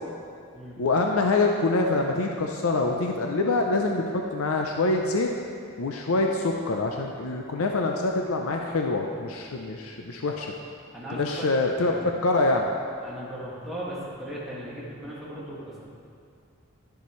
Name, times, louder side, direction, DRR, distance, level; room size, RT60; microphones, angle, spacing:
voice 1, 0.8-5.3 5.8-10.6 11.1-11.9 12.2-12.7, left 3 dB, 80° left, 2 dB, 0.6 m, -25 dB
voice 2, 10.9-11.5 11.8-12.2 13.0-15.8, equal, ahead, -9 dB, 1.9 m, -37 dB
11.5 x 6.9 x 3.1 m, 2.4 s
head